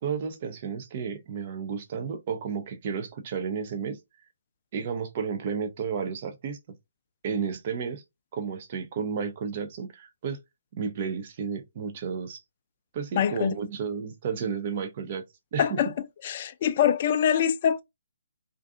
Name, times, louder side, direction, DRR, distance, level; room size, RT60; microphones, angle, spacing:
voice 1, 0.0-4.0 4.7-6.6 7.2-8.0 8.3-10.4 10.8-12.4 12.9-15.2 15.5-15.8, right 6 dB, 40° right, 0.5 m, -32 dB
voice 2, 13.2-13.5 15.6-15.9 16.2-17.8, left 9 dB, 40° left, 0.3 m, -24 dB
2.5 x 2.3 x 2.5 m
figure-of-eight pair, 140°, 0 cm